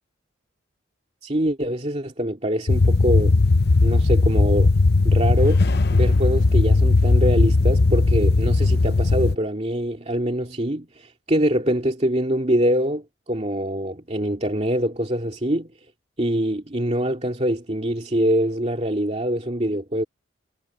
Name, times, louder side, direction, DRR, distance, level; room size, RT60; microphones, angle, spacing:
voice 1, 1.2-3.3 3.8-4.7 5.0-5.6 5.9-15.7 16.2-20.0, equal, 35° right, 2.4 m, -24 dB
sound 1, 2.7-9.4, left 3 dB, 55° left, 0.7 m, -17 dB
head